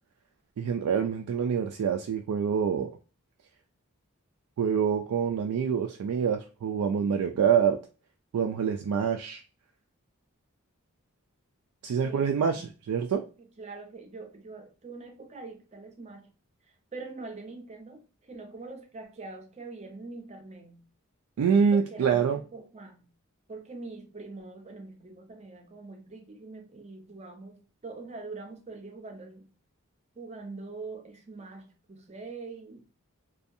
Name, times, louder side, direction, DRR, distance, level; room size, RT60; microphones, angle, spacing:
voice 1, 0.6-3.0 4.6-7.8 8.3-9.4 11.8-13.2 21.4-22.4, right 7 dB, 90° right, 0.3 m, -26 dB
voice 2, 13.6-16.3 16.9-20.9 21.7-23.1 23.5-29.5 30.2-32.9, right 3 dB, 30° right, 0.5 m, -43 dB
2.6 x 2.3 x 2.5 m
head